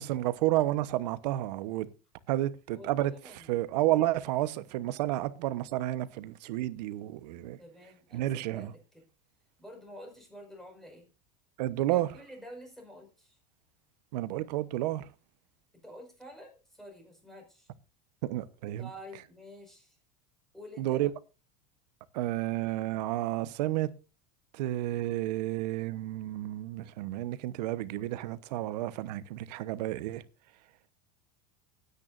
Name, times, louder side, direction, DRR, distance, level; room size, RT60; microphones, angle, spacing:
voice 1, 0.0-1.9 2.3-3.1 3.5-7.6 8.1-8.7 11.6-12.1 14.1-15.1 18.2-18.9 20.8-21.1 22.1-23.9 24.5-30.2, right 15 dB, 80° right, 1.1 m, -31 dB
voice 2, 2.7-3.7 7.6-9.0 9.6-11.1 11.9-13.4 15.8-17.7 18.8-20.0 20.5-21.1, equal, ahead, 5.4 m, -49 dB
18.0 x 9.6 x 2.6 m
supercardioid pair, 145°, 21 cm